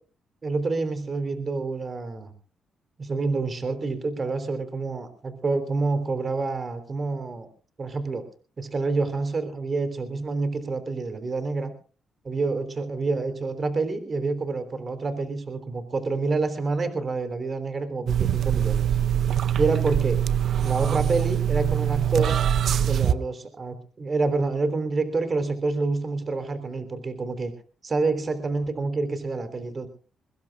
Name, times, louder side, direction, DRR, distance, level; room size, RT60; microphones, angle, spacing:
voice 1, 0.4-2.3 3.0-7.5 7.8-8.3 8.6-11.7 12.2-19.0 19.6-20.2 20.6-22.4 22.9-27.5 27.8-29.9, right 3 dB, 40° right, 10 dB, 3.6 m, -27 dB
sound 1, 18.1-23.1, right 10 dB, 70° right, 0.8 m, -23 dB
23.5 x 20.5 x 2.4 m, 0.37 s
cardioid pair, 70°, 0 cm